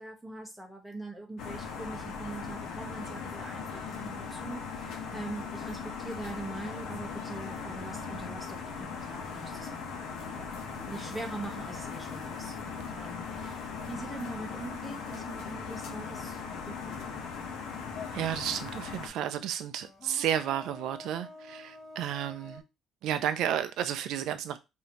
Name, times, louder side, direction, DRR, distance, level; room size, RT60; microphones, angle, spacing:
voice 1, 0.0-10.5 10.9-17.2, right 2 dB, ahead, 0.9 m, -43 dB
sound 1, 1.4-19.1, left 5 dB, 80° left, 0.9 m, -39 dB
sound 2, 5.1-15.1 15.5-15.7 17.3-17.4 18.4-18.5 19.8-22.6, left 1 dB, 25° left, 1.1 m, -53 dB
voice 2, 18.1-22.6 23.0-24.6, right 10 dB, 65° right, 0.3 m, -32 dB
4.9 x 2.7 x 2.9 m
cardioid pair, 175°, 0 cm